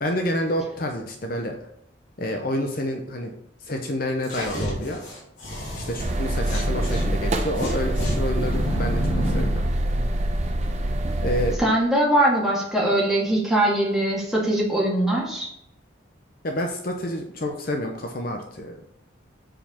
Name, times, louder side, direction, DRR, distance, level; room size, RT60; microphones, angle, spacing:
voice 1, 0.0-1.6 2.2-3.3 3.6-5.0 5.7-9.6 11.2-11.6 16.4-18.8, equal, 45° left, 3 dB, 0.8 m, -28 dB
sound 1, 4.2-7.1 7.6-9.6, equal, 70° left, 2.6 m, -31 dB
sound 2, 6.0-11.6, right 1 dB, 35° right, 0.7 m, -25 dB
voice 2, 11.6-15.5, right 1 dB, ahead, -5 dB, 1.9 m, -21 dB
7.8 x 4.7 x 4.4 m, 0.77 s
head